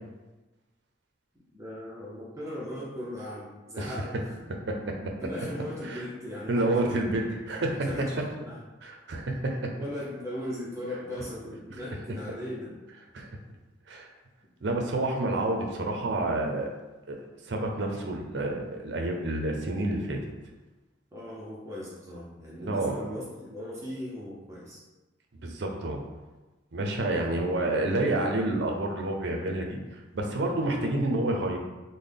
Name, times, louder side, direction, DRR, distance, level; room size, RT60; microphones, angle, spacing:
voice 1, 1.5-4.5 5.2-7.4 7.8-8.6 9.8-12.7 21.1-24.8 27.4-27.6, left 1 dB, 15° right, -6 dB, 0.6 m, -38 dB
voice 2, 4.7-5.1 5.9-6.0 6.5-7.2 7.5-7.9 8.8-9.7 13.1-13.3 13.9-14.1 14.6-16.7 17.1-17.2 17.5-20.2 22.6-22.9 25.4-26.0 26.7-29.8 30.1-31.6, right 2 dB, 65° right, 2 dB, 0.5 m, -29 dB
3.7 x 2.1 x 3.4 m, 1.1 s
head